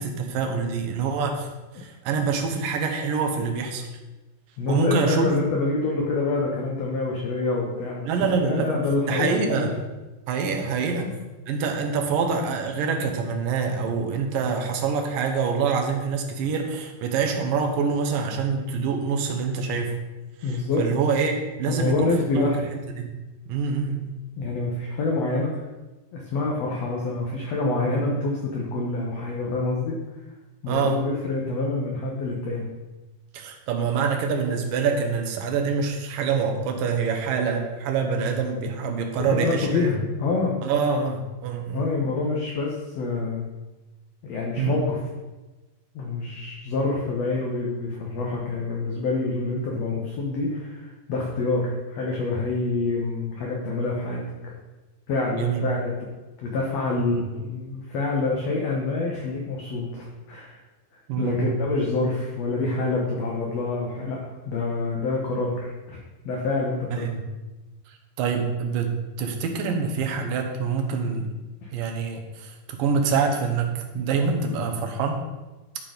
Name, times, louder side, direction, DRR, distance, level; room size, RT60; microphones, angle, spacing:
voice 1, 0.0-1.5 1.7-3.9 4.7-5.3 8.1-8.8 9.1-9.7 10.3-11.1 11.5-20.0 20.4-21.3 21.6-22.6 23.0-23.1 23.5-24.1 30.7-31.0 33.3-39.9 40.6-41.9 44.6-44.8 55.3-55.6 57.0-57.2 61.1-61.6 66.9-67.2 67.9-71.3 71.7-75.2, right 5 dB, 70° right, 3 dB, 2.6 m, -26 dB
voice 2, 4.6-8.1 8.4-9.7 10.8-11.1 20.4-20.9 21.7-22.6 24.4-25.6 26.1-30.0 30.6-32.7 39.2-40.5 41.7-43.4 44.2-45.0 46.0-54.5 55.1-55.9 56.4-60.6 61.2-64.2 64.5-66.0 66.3-67.1 71.6-71.7, left 3 dB, 65° left, -2 dB, 1.7 m, -26 dB
12.0 x 4.5 x 5.2 m, 1.1 s
omnidirectional pair, 4.3 m